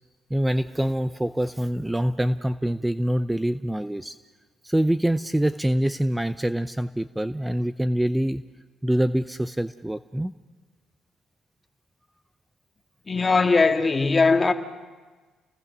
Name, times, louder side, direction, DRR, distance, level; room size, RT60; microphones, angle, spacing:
voice 1, 0.3-4.2 4.6-8.4 8.8-10.3, right 1 dB, 10° right, 0.6 m, -25 dB
voice 2, 13.1-14.5, left 4 dB, 25° left, 1.8 m, -19 dB
29.5 x 20.5 x 6.2 m
cardioid pair, 80°, 0 cm